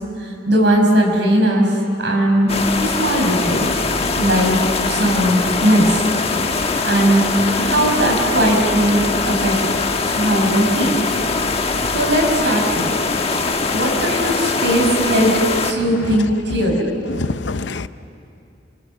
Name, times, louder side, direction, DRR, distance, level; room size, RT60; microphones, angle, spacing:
voice 1, 0.5-1.7 2.0-3.7 4.2-4.6 4.9-5.8 6.8-7.2 7.6-9.5 10.0-10.9 11.9-12.9 13.7-15.3 15.6-16.9, right 1 dB, 70° right, 1 dB, 5.6 m, -18 dB
sound 1, 2.5-15.7, left 3 dB, 35° left, 1.2 m, -21 dB
voice 2, 15.8-16.4 17.1-17.9, left 3 dB, 75° left, 12 dB, 0.7 m, -25 dB
30.0 x 24.5 x 7.3 m, 2.5 s
head